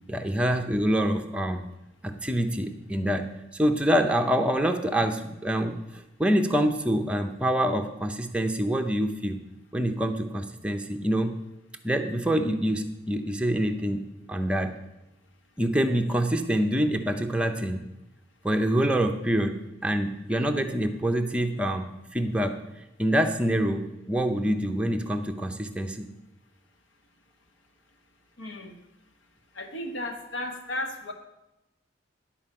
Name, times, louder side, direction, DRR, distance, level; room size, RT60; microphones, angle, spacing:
voice 1, 0.1-1.7 2.0-5.8 6.2-9.4 9.7-11.4 11.8-14.8 15.6-17.9 18.4-22.6 23.0-26.1, equal, 5° right, 4 dB, 0.5 m, -26 dB
voice 2, 28.4-28.8 29.5-31.1, left 1 dB, 80° left, 5 dB, 1.2 m, -34 dB
11.0 x 4.4 x 7.5 m, 0.95 s
head